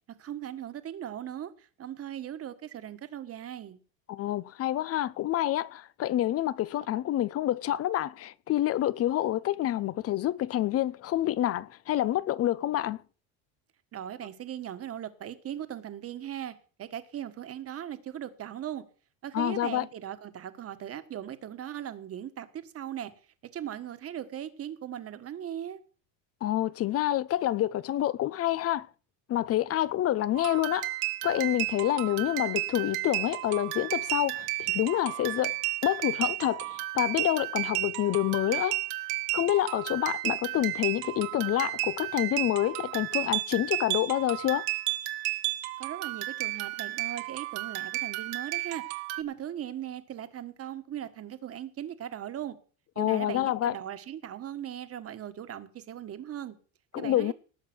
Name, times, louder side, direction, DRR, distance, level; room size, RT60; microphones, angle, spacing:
voice 1, 0.2-3.8 13.9-18.8 19.2-23.1 23.5-25.8 45.8-52.6 52.9-56.6 57.0-57.3, right 10 dB, 35° right, 1.6 m, -39 dB
voice 2, 4.1-13.0 19.3-19.9 26.4-28.9 29.3-30.9 31.2-35.6 35.8-38.8 39.3-44.7 53.0-53.7 56.9-57.3, left 13 dB, 35° left, 0.7 m, -28 dB
sound 1, 30.3-49.2, right 19 dB, 85° right, 1.7 m, -33 dB
18.5 x 7.4 x 6.2 m
cardioid pair, 135°, 40 cm